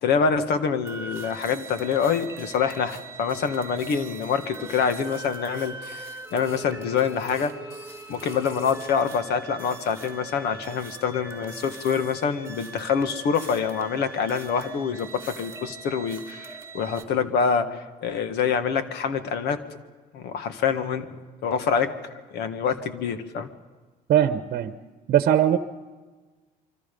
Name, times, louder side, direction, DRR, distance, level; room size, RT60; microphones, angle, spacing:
voice 1, 0.0-6.0 6.3-7.5 8.1-19.6 20.1-21.2 21.4-21.9 22.3-23.5, left 6 dB, 75° left, 9 dB, 1.7 m, -26 dB
sound 1, 0.8-17.0, right 3 dB, 15° right, 3.1 m, -41 dB
voice 2, 24.1-24.7 25.1-25.6, right 10 dB, 60° right, 10 dB, 1.0 m, -20 dB
26.0 x 24.0 x 5.4 m, 1.3 s
cardioid pair, 110°, 17 cm